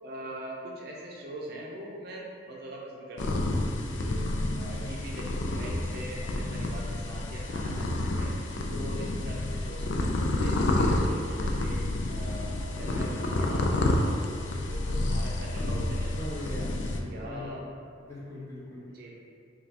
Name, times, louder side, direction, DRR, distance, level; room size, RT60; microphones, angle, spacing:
voice 1, 0.0-3.5 3.9-4.2 4.6-8.3 8.7-11.8 12.1-14.2 14.7-16.7 17.1-17.6 18.9-19.1, right 1 dB, 55° right, -3 dB, 0.5 m, -42 dB
sound 1, 3.2-17.0, left 1 dB, 75° left, 0.4 m, -29 dB
voice 2, 3.8-4.4 8.6-8.9 14.4-14.7 16.1-17.6 18.0-18.9, left 1 dB, 15° left, -9 dB, 1.0 m, -42 dB
5.3 x 2.3 x 2.7 m, 2.3 s
head